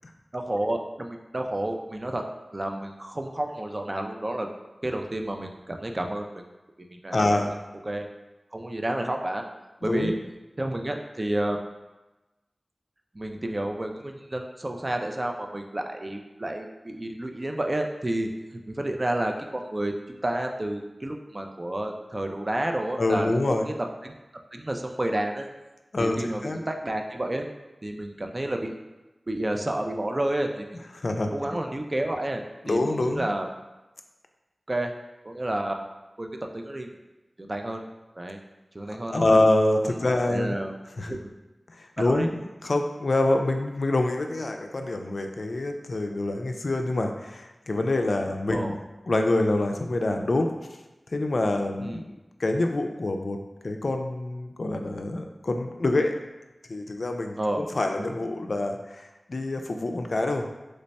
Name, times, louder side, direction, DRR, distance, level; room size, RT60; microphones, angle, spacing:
voice 1, 0.3-2.2 2.5-4.5 4.8-6.4 6.8-7.6 7.8-8.1 8.5-9.4 9.8-10.1 10.6-11.6 13.1-19.9 20.2-23.7 24.0-24.1 24.5-25.5 26.0-27.5 27.8-28.7 29.3-30.7 31.3-33.5 34.7-34.9 35.2-35.8 36.2-36.9 37.4-37.8 38.2-38.4 38.7-39.4 39.8-40.0 40.2-40.7 41.1-41.3 42.0-42.3 48.5-48.8 51.8-52.0 57.4-57.7, right 1 dB, 35° right, 3 dB, 0.3 m, -30 dB
voice 2, 7.1-7.5 9.8-10.1 23.0-23.7 25.9-26.6 31.0-31.6 32.6-33.2 38.9-40.6 41.0-41.2 41.8-48.8 49.1-50.5 51.1-53.4 53.6-56.1 56.7-60.5, left 2 dB, 70° left, 4 dB, 0.3 m, -26 dB
3.1 x 2.2 x 4.0 m, 1.1 s
wide cardioid pair, 65°, 0 cm